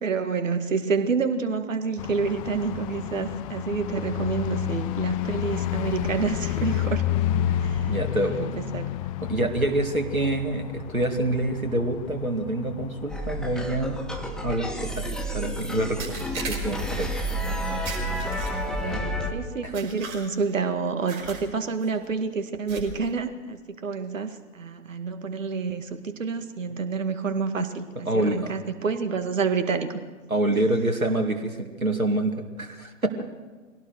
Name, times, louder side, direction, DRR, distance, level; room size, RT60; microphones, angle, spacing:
voice 1, 0.0-7.0 7.6-8.0 8.3-8.9 18.8-30.0 30.5-30.6, right 5 dB, 65° right, 9 dB, 2.1 m, -28 dB
sound 1, 2.0-14.7, left 11 dB, 25° left, 0.7 m, -31 dB
voice 2, 7.5-8.6 9.2-14.0 14.4-17.1 19.6-19.7 28.1-28.6 30.3-33.1, right 1 dB, 90° right, 5 dB, 2.4 m, -27 dB
sound 2, 13.1-19.3, equal, ahead, 1.7 m, -30 dB
sound 3, 15.0-15.2 16.0-17.0 17.8-18.8 19.7-20.5 21.1-21.5 21.8-22.0 22.7-23.1, right 4 dB, 40° right, 5.6 m, -38 dB
23.0 x 17.5 x 6.6 m, 1.4 s
figure-of-eight pair, 115°, 41 cm